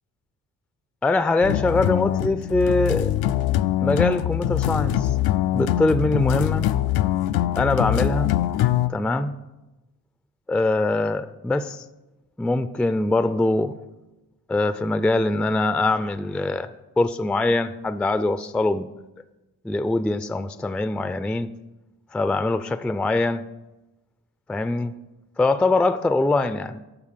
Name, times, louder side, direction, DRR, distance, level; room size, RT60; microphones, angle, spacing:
voice 1, 1.0-3.1 3.8-5.1 5.5-6.7 7.6-8.3 8.9-9.3 10.5-11.8 12.4-13.7 14.5-16.7 17.0-18.9 19.6-21.5 22.1-23.4 24.5-24.9 25.4-26.8, left 2 dB, 5° left, 0.3 m, -23 dB
sound 1, 1.4-8.9, left 12 dB, 80° left, 0.5 m, -23 dB
9.7 x 6.6 x 5.7 m
cardioid pair, 65°, 37 cm